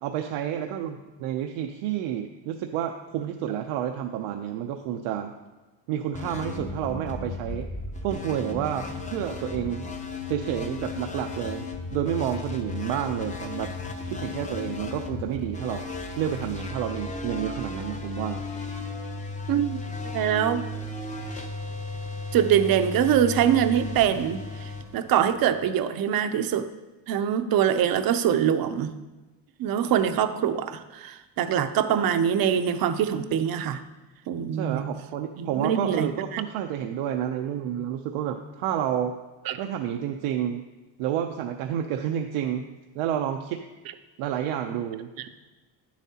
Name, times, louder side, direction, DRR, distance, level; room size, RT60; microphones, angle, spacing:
voice 1, 0.0-5.3 5.9-7.7 8.0-9.9 10.3-11.6 11.9-13.7 14.0-15.9 16.2-18.4 34.5-39.2 39.6-40.6 41.0-42.7 42.9-43.6 44.2-45.3, right 10 dB, 85° right, 5 dB, 0.6 m, -30 dB
sound 1, 6.1-25.7, left 3 dB, 15° left, 0.6 m, -35 dB
voice 2, 19.5-19.8 20.1-20.7 22.3-26.7 27.1-29.0 29.6-33.8 34.3-34.9 35.4-36.4 39.5-39.6, right 9 dB, 50° right, 10 dB, 0.6 m, -24 dB
9.3 x 7.2 x 2.8 m, 1.1 s
cardioid pair, 125°, 48 cm